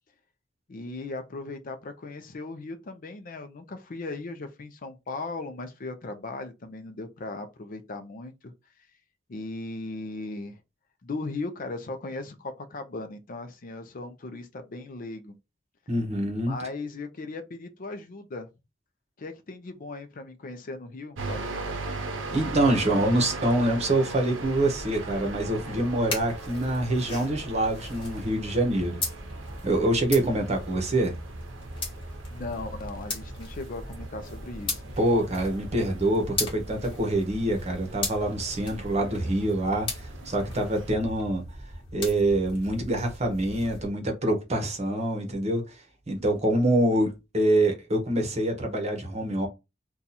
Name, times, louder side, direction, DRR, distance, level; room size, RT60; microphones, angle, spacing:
voice 1, 0.7-8.5 9.3-10.6 11.0-15.3 16.5-18.5 19.2-21.5 32.3-34.9, left 3 dB, 45° left, 0.5 m, -37 dB
voice 2, 15.9-16.6 22.3-29.0 29.6-31.1 35.0-41.4 41.9-45.6 46.1-49.5, right 1 dB, 35° right, 0.9 m, -25 dB
sound 1, 21.2-41.0, right 3 dB, 80° right, 0.6 m, -40 dB
sound 2, 24.4-43.9, left 2 dB, 30° left, 1.3 m, -38 dB
2.7 x 2.3 x 4.0 m
head